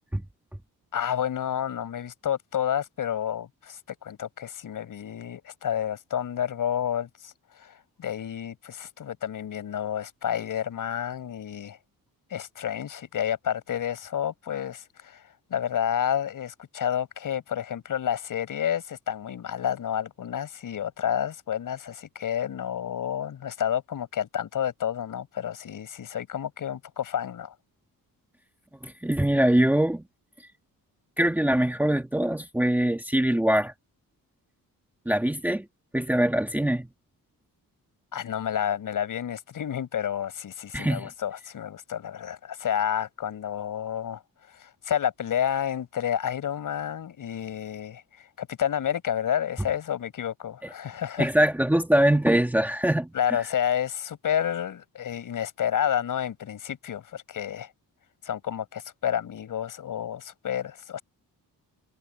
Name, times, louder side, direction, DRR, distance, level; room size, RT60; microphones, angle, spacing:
voice 1, 0.9-11.8 12.3-27.5 38.1-44.2 44.5-51.3 53.1-57.7 58.2-61.0, left 9 dB, 65° left, 7.3 m, -30 dB
voice 2, 28.8-30.0 31.2-33.7 35.0-35.6 35.9-36.9 40.7-41.1 51.2-53.1, right 1 dB, 5° right, 1.5 m, -23 dB
wide cardioid pair, 175°, 35 cm